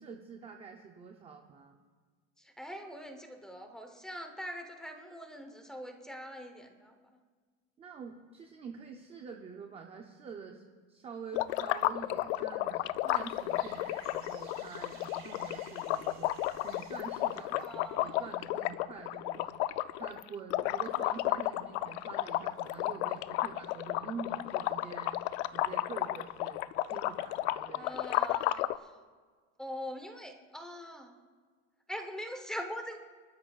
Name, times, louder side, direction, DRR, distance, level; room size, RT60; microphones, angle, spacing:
voice 1, 0.0-1.8 7.8-26.6 26.9-27.9, right 5 dB, 15° right, 3 dB, 0.5 m, -46 dB
voice 2, 2.4-6.9 17.6-18.2 27.7-28.9 29.6-31.1 31.9-33.0, equal, ahead, 4 dB, 0.9 m, -43 dB
sound 1, 11.3-28.8, left 16 dB, 80° left, 0.5 m, -33 dB
sound 2, 13.1-18.4, right 7 dB, 40° right, 1.8 m, -56 dB
25.5 x 12.5 x 2.4 m, 1.5 s
cardioid pair, 170°, 34 cm